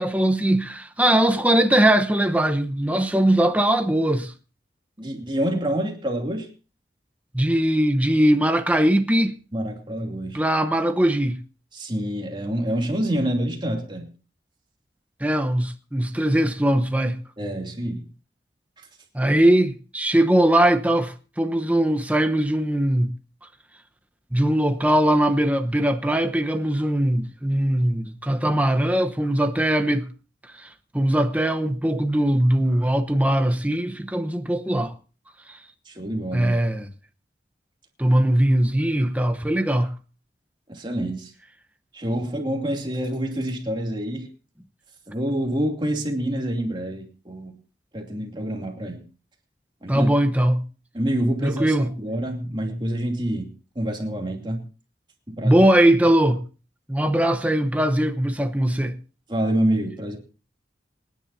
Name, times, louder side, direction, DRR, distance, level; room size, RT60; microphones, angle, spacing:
voice 1, 0.0-4.3 7.3-9.4 10.3-11.4 15.2-17.2 19.1-23.1 24.3-30.1 30.6-30.7 30.9-34.9 35.5-35.6 36.3-36.9 38.0-39.9 49.9-50.6 51.4-51.9 55.4-56.4 56.9-59.0, right 1 dB, 10° right, 0.9 m, -20 dB
voice 2, 5.0-6.5 9.5-10.4 11.7-14.1 17.4-18.1 18.8-18.9 35.9-36.6 40.7-41.3 41.9-44.3 45.1-47.5 47.9-49.0 49.8-50.1 50.9-53.5 53.7-54.6 55.3-55.7 59.3-60.2, right 1 dB, 25° right, 2.7 m, -27 dB
26.5 x 10.5 x 2.7 m
head